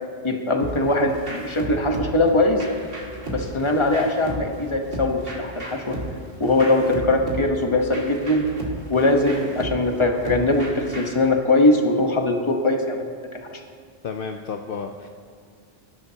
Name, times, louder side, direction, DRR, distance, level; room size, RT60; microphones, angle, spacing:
voice 1, 0.2-2.6 3.3-6.0 6.4-8.4 8.9-13.1 13.5-13.6, left 2 dB, 30° left, 3 dB, 1.2 m, -21 dB
sound 1, 0.6-11.3, equal, 65° right, 2.3 m, -35 dB
voice 2, 14.0-15.1, left 5 dB, 65° left, 5 dB, 0.8 m, -31 dB
19.5 x 11.0 x 2.9 m, 2.2 s
omnidirectional pair, 1.0 m